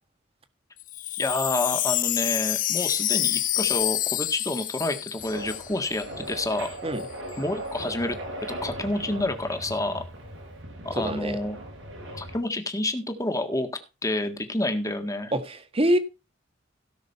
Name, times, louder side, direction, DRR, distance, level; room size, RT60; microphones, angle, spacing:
Wind chime, 0.8-6.0 6.3-6.4 6.6-7.0, left 14 dB, 45° left, 0.5 m, -28 dB
voice 1, 1.2-6.7 7.4-8.2 8.6-10.0 10.8-11.6 12.1-13.7 14.0-15.3, left 2 dB, 15° left, 7 dB, 1.7 m, -28 dB
sound 1, 5.2-12.4, right 1 dB, 85° right, 6.2 m, -38 dB
voice 2, 10.9-11.4 15.3-16.0, right 1 dB, 30° right, 8 dB, 1.6 m, -25 dB
17.0 x 6.4 x 4.2 m, 0.29 s
head